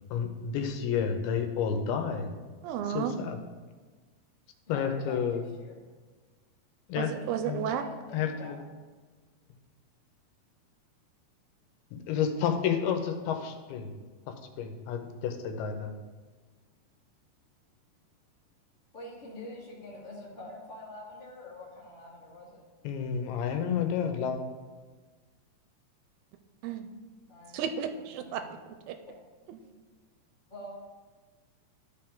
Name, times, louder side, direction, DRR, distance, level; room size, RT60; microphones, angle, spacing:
voice 1, 0.1-2.3 2.9-3.4 4.7-5.4 6.9-7.1 7.5-7.7 8.1-8.6 12.1-13.9 14.6-15.9 22.8-24.4, left 7 dB, 85° left, 6 dB, 2.7 m, -30 dB
voice 2, 2.6-3.1 7.0-7.9 26.6-26.9 27.5-29.0 29.5-29.6, right 8 dB, 80° right, 8 dB, 2.1 m, -33 dB
voice 3, 4.7-5.7 7.8-8.5 18.9-22.6 27.3-27.6 27.9-28.6 29.1-29.2 30.5-30.7, left 1 dB, 25° left, -7 dB, 1.2 m, -46 dB
13.0 x 4.4 x 3.8 m, 1.4 s
omnidirectional pair, 4.4 m